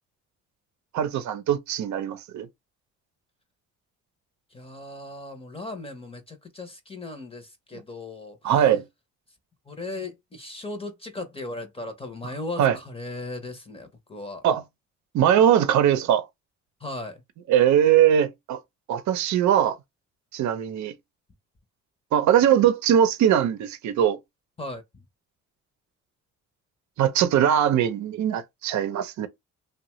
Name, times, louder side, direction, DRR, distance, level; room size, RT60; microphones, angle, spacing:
voice 1, 0.9-2.5 8.4-8.8 12.6-12.8 14.4-14.6 15.1-16.2 17.5-18.6 18.9-19.8 20.3-21.0 22.1-24.2 27.0-29.3, right 10 dB, 70° right, 0.6 m, -21 dB
voice 2, 4.5-8.5 9.7-14.4 16.8-17.2 24.6-25.0, left 2 dB, 20° left, 0.7 m, -37 dB
2.7 x 2.2 x 3.0 m
cardioid pair, 90°, 30 cm